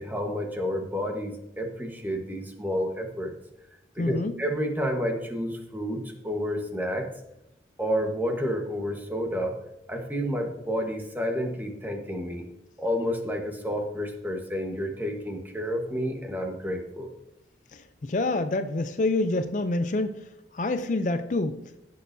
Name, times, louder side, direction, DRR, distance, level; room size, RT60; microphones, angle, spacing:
voice 1, 0.0-3.3 3.9-7.1 7.8-9.6 9.9-12.4 12.8-17.1, equal, 10° right, 3 dB, 1.2 m, -30 dB
voice 2, 4.0-4.4 17.7-21.7, left 2 dB, 45° left, 9 dB, 0.4 m, -27 dB
16.5 x 6.6 x 2.7 m, 0.87 s
head